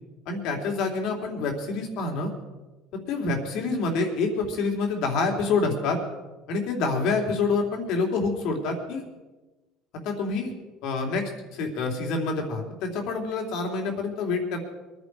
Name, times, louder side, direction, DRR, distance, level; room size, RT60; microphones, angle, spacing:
voice 1, 0.3-2.3 3.1-6.0 6.5-9.0 10.0-10.5 10.8-14.6, left 4 dB, 65° left, 2 dB, 3.4 m, -27 dB
23.0 x 10.5 x 4.8 m, 1.1 s
supercardioid pair, 110°, 0 cm